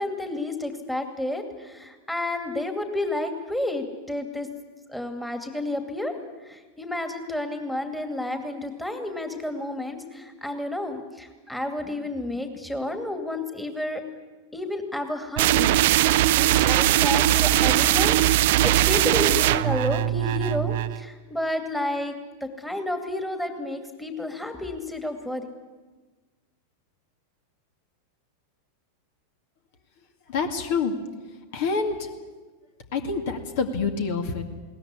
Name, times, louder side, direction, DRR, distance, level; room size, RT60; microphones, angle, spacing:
voice 1, 0.0-4.5 4.9-6.1 6.4-14.0 14.5-15.7 16.3-22.1 22.4-25.5, left 1 dB, 5° left, 6 dB, 2.4 m, -31 dB
sound 1, 15.4-21.0, right 15 dB, 50° right, 0.7 m, -20 dB
voice 2, 30.3-30.9 31.5-32.0 32.9-34.4, left 5 dB, 50° left, 6 dB, 2.3 m, -26 dB
21.5 x 18.0 x 9.8 m, 1.3 s
figure-of-eight pair, 90°, 0 cm